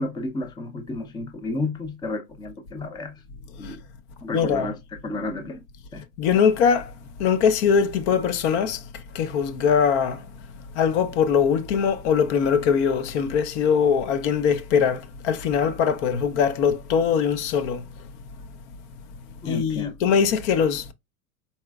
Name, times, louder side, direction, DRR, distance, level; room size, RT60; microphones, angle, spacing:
voice 1, 0.0-3.2 3.6-3.8 4.2-5.6 5.9-6.1 19.4-19.9, left 2 dB, 10° left, 0.5 m, -31 dB
voice 2, 4.3-4.7 6.2-6.9 7.2-8.8 9.1-10.2 10.8-17.8 19.5-20.9, left 7 dB, 55° left, 0.7 m, -21 dB
4.3 x 3.8 x 2.3 m
hypercardioid pair, 95°, 43 cm